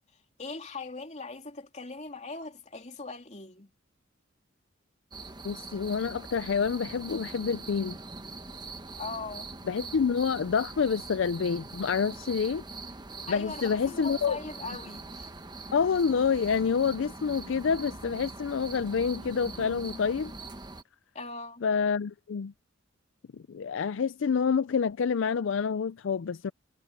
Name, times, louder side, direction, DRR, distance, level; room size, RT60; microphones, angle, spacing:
voice 1, 0.4-3.7 9.0-9.5 13.3-15.3 21.1-21.7, left 3 dB, 35° left, 3.2 m, -40 dB
sound 1, 5.1-20.8, right 3 dB, 20° right, 1.1 m, -42 dB
voice 2, 5.4-8.0 9.6-12.6 13.3-14.4 15.7-20.3 21.6-22.5 23.3-26.5, left 6 dB, 65° left, 0.4 m, -28 dB
head